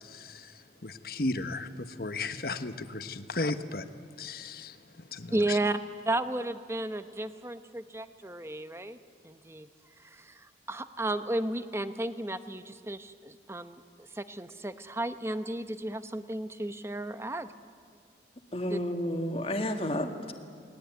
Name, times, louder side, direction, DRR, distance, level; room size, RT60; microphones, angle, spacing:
voice 1, 0.0-3.8 4.2-5.6, left 2 dB, 55° left, 10 dB, 1.2 m, -35 dB
voice 2, 5.3-5.8 6.1-9.0 9.2-9.7 10.0-17.5 18.7-18.8, right 1 dB, 15° right, 11 dB, 0.8 m, -33 dB
voice 3, 18.5-20.3, left 1 dB, 30° left, 5 dB, 1.9 m, -31 dB
29.0 x 20.0 x 9.4 m, 2.3 s
head